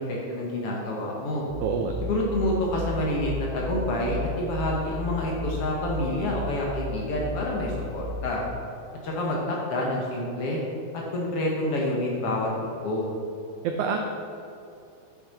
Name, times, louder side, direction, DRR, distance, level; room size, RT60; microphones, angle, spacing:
voice 1, 0.0-1.4 2.0-8.4 9.0-10.6 10.9-12.5 12.8-13.1, left 1 dB, 65° left, -3 dB, 1.5 m, -28 dB
sound 1, 1.5-8.5, left 1 dB, 65° right, 2.6 m, -34 dB
voice 2, 1.6-1.9 13.6-14.0, right 6 dB, 90° right, 3 dB, 1.7 m, -26 dB
9.9 x 6.2 x 4.3 m, 2.7 s
omnidirectional pair, 4.1 m